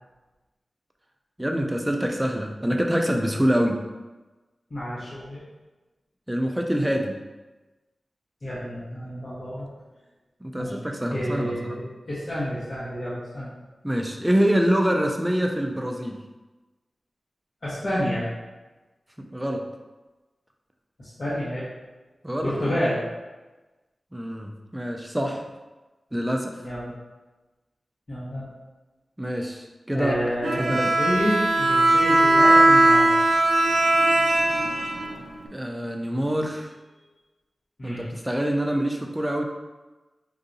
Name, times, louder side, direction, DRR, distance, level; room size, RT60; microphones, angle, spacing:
voice 1, 1.4-3.8 6.3-7.2 10.4-11.8 13.8-16.2 19.2-19.6 22.2-22.8 24.1-25.4 26.1-26.7 29.2-30.2 30.4-30.9 35.5-36.7 37.8-39.4, equal, 10° right, 2 dB, 0.5 m, -25 dB
voice 2, 4.7-5.4 8.4-9.7 10.6-10.7 11.1-13.5 17.6-18.3 21.0-21.7 22.4-23.0 26.6-27.0 28.1-28.5 29.9-33.1 37.8-38.1, equal, 50° left, -10 dB, 1.1 m, -29 dB
Bowed string instrument, 30.4-35.5, right 2 dB, 75° right, 0.5 m, -19 dB
4.6 x 2.7 x 2.6 m, 1.2 s
wide cardioid pair, 75°, 0 cm